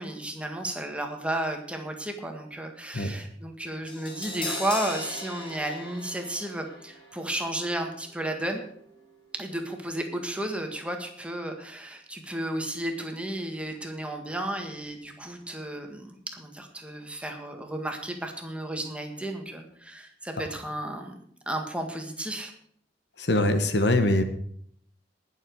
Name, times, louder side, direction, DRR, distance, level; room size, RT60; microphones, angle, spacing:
voice 1, 0.0-8.6 9.3-21.2 21.4-22.5, right 1 dB, 5° right, 4 dB, 1.7 m, -33 dB
Crash cymbal, 3.9-10.0 10.3-10.4, left 2 dB, 30° left, 2.8 m, -40 dB
voice 2, 23.2-24.2, left 1 dB, 70° left, 8 dB, 1.3 m, -23 dB
19.5 x 7.2 x 4.8 m, 0.64 s
head